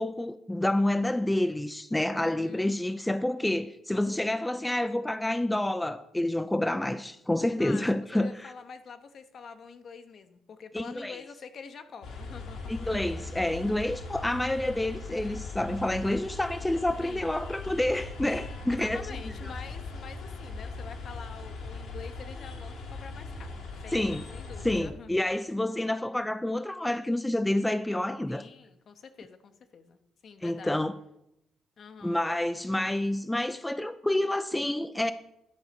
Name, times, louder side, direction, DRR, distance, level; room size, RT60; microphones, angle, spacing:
voice 1, 0.0-8.5 10.7-11.2 12.7-19.0 23.9-24.3 24.6-28.4 30.4-30.9 32.0-35.1, left 1 dB, 10° left, 0.4 m, -28 dB
voice 2, 2.1-2.7 7.6-12.7 17.0-17.3 18.7-25.2 28.3-30.8 31.8-32.2, left 5 dB, 55° left, 0.8 m, -46 dB
sound 1, 12.0-24.8, left 3 dB, 80° left, 1.8 m, -40 dB
10.5 x 4.0 x 6.7 m
cardioid pair, 90°, 0 cm